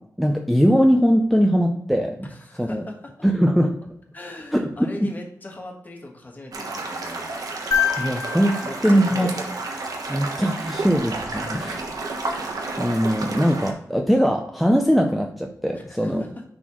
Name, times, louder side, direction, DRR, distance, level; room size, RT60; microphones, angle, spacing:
voice 1, 0.2-2.2 2.6-2.8 3.2-3.7 4.5-4.7 5.0-5.1 8.0-9.3 10.1-11.8 12.8-16.2, equal, ahead, 2 dB, 0.5 m, -20 dB
voice 2, 2.2-3.0 4.1-7.4 8.6-9.6 11.4-11.8 15.7-16.4, left 1 dB, 30° left, 1 dB, 1.4 m, -39 dB
sound 1, 6.5-13.7, right 3 dB, 70° right, 1.0 m, -31 dB
sound 2, 7.7-10.0 12.0-12.1, left 8 dB, 70° left, 1.1 m, -27 dB
9.6 x 4.1 x 3.0 m, 0.75 s
wide cardioid pair, 125°, 6 cm